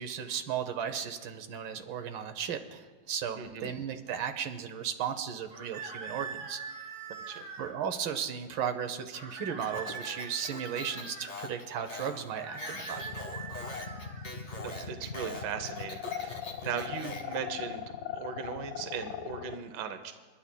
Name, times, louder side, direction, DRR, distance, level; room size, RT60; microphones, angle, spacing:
voice 1, 0.0-6.6 7.6-13.2, right 8 dB, 90° right, 7 dB, 1.6 m, -35 dB
voice 2, 3.4-3.7 7.3-7.5 14.6-17.8 18.1-20.1, right 7 dB, 70° right, 8 dB, 1.4 m, -38 dB
sound 1, 5.5-7.7 9.1-11.3 12.3-14.4, right 5 dB, 50° right, 1.5 m, -43 dB
Speech, 9.6-17.4, left 2 dB, 35° left, 1.1 m, -43 dB
sound 2, 12.9-19.6, left 8 dB, 70° left, 0.6 m, -39 dB
29.5 x 10.5 x 2.2 m, 1.4 s
omnidirectional pair, 2.1 m